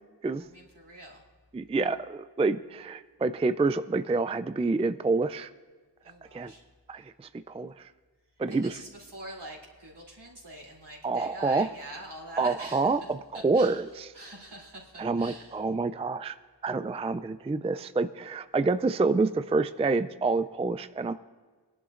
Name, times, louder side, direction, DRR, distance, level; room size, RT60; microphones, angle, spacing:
voice 1, 0.4-1.2 6.0-6.6 8.5-13.8 14.1-15.6, right 1 dB, 70° right, -3 dB, 3.2 m, -45 dB
voice 2, 1.5-5.5 6.3-6.5 6.9-7.9 8.4-8.8 11.0-11.7 12.4-14.1 15.0-16.4 16.6-21.1, right 3 dB, 15° right, 11 dB, 0.3 m, -27 dB
21.0 x 11.0 x 2.5 m, 1.5 s
wide cardioid pair, 50°, 42 cm